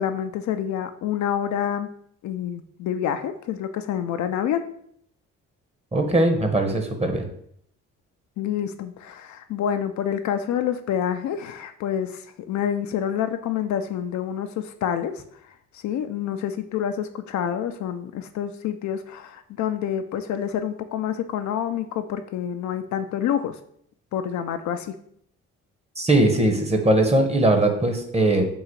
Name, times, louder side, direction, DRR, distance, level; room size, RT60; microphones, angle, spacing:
voice 1, 0.0-1.9 2.2-4.7 8.4-23.6 24.1-24.9, left 9 dB, 65° left, 9 dB, 0.4 m, -28 dB
voice 2, 5.9-7.2 26.0-28.5, right 1 dB, 20° right, 5 dB, 0.9 m, -20 dB
3.8 x 2.4 x 4.6 m, 0.67 s
supercardioid pair, 60°, 31 cm